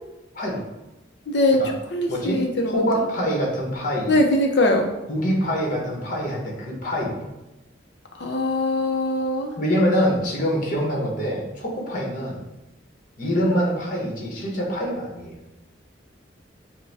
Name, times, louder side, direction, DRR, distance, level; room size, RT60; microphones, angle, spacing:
voice 1, 1.3-1.6 1.9-2.9 4.1-4.9 8.2-9.5, left 1 dB, 60° left, 3 dB, 0.6 m, -21 dB
voice 2, 2.1-4.1 5.1-7.3 9.6-12.4 13.2-15.4, equal, 45° left, -2 dB, 1.1 m, -25 dB
6.6 x 2.2 x 3.4 m, 0.98 s
head